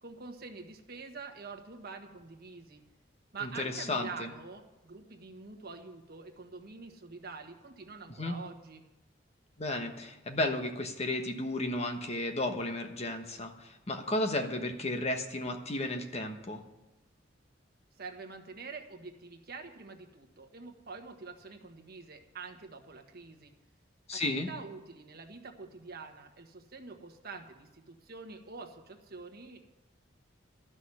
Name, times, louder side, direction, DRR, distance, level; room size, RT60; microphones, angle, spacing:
voice 1, 0.0-2.8 3.3-8.8 18.0-23.5 24.1-29.6, right 4 dB, 55° right, 4 dB, 1.4 m, -46 dB
voice 2, 3.4-4.3 8.2-8.4 9.6-16.6 24.1-24.5, left 1 dB, 35° left, 5 dB, 1.2 m, -33 dB
12.5 x 6.3 x 9.7 m, 1.0 s
head